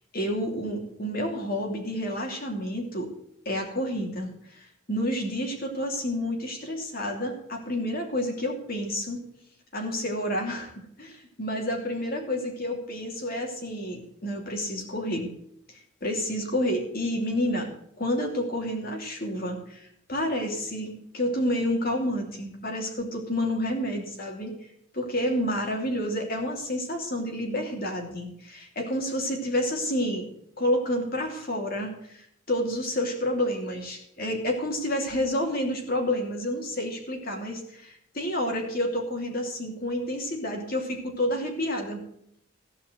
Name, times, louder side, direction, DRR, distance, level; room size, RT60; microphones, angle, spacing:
voice 1, 0.1-3.1 3.4-9.2 9.7-10.7 11.0-15.3 15.7-17.7 18.0-24.5 24.9-30.3 30.6-42.0, left 1 dB, 45° left, 2 dB, 2.8 m, -29 dB
15.5 x 5.4 x 7.9 m, 0.71 s
head